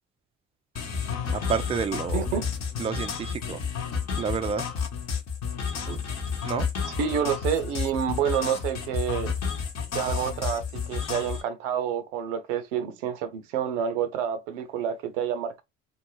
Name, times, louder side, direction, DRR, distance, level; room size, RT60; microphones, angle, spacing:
sound 1, 0.8-11.4, left 6 dB, 45° left, 0.9 m, -31 dB
voice 1, 1.3-2.3 2.8-3.6 4.2-4.7 6.4-6.7, right 6 dB, 15° right, 0.4 m, -29 dB
voice 2, 2.1-2.5 5.9-6.0 7.0-9.3 9.9-15.6, right 8 dB, 80° right, 0.6 m, -28 dB
2.5 x 2.3 x 3.0 m
hypercardioid pair, 60°, 36 cm